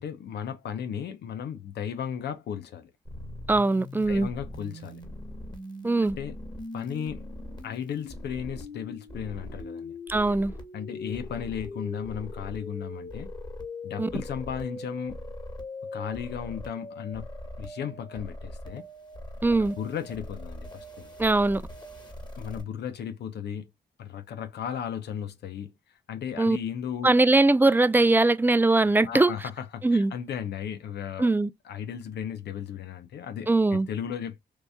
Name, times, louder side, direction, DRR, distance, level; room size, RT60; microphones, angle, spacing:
voice 1, 0.0-2.9 4.1-5.0 6.2-6.4 6.7-7.3 7.6-9.9 10.7-13.3 13.8-15.2 15.9-17.3 17.6-18.8 19.8-21.1 22.4-23.7 24.0-27.1 29.0-31.3 31.6-34.4, left 8 dB, 70° left, 0.6 m, -35 dB
sound 1, 3.1-22.6, left 1 dB, 25° left, 1.6 m, -40 dB
voice 2, 3.5-4.3 5.8-6.2 10.1-10.5 14.0-14.1 19.4-19.7 21.2-21.6 26.4-26.6 27.0-29.3 29.8-30.1 31.2-31.5 33.5-33.9, right 2 dB, 10° right, 0.4 m, -21 dB
4.6 x 2.7 x 2.2 m
supercardioid pair, 50°, 18 cm